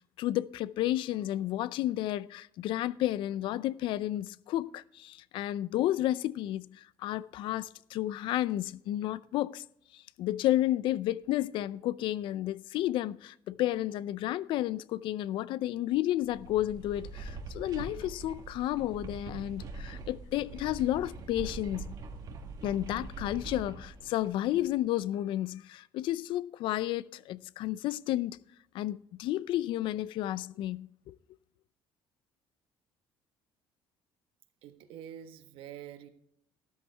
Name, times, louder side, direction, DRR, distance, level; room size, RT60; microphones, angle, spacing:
voice 1, 0.2-9.6 9.9-21.9 22.6-28.4 28.7-31.2, left 14 dB, 65° left, 0.5 m, -32 dB
sound 1, 16.2-24.7, right 3 dB, 45° right, 1.7 m, -43 dB
voice 2, 34.6-36.1, right 10 dB, 75° right, 1.4 m, -46 dB
13.0 x 13.0 x 3.4 m
cardioid pair, 135°, 9 cm